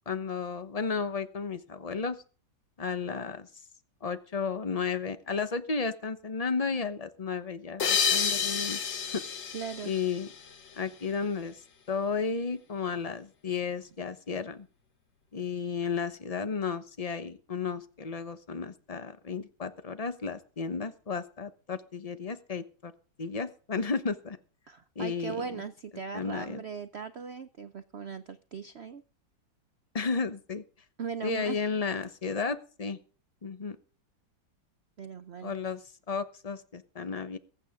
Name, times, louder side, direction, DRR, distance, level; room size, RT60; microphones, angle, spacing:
voice 1, 0.1-2.2 2.8-3.5 4.0-8.8 9.1-9.2 9.8-10.3 10.8-11.6 11.9-14.7 15.3-22.9 23.2-24.4 25.0-25.6 26.1-26.6 29.9-30.6 31.2-33.0 33.4-33.8 35.4-37.4, left 5 dB, 30° left, 11 dB, 0.7 m, -33 dB
sound 1, 7.8-10.9, left 7 dB, 65° left, 2.0 m, -30 dB
voice 2, 9.5-9.9 24.7-29.0 31.0-31.6 35.0-35.5, right 6 dB, 85° right, 11 dB, 0.5 m, -39 dB
22.0 x 9.0 x 3.6 m, 0.38 s
omnidirectional pair, 2.1 m